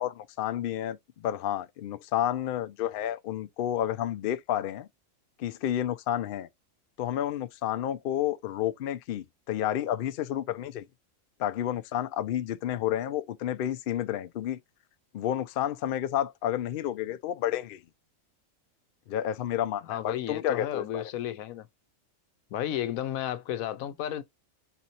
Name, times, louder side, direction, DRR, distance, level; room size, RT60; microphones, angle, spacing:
voice 1, 0.0-4.9 5.4-6.5 7.0-10.9 11.4-14.6 15.1-17.8 19.1-21.1, left 11 dB, 65° left, 0.5 m, -30 dB
voice 2, 19.9-21.7 22.5-24.2, left 11 dB, 85° left, 1.1 m, -33 dB
4.1 x 3.0 x 4.1 m
omnidirectional pair, 1.4 m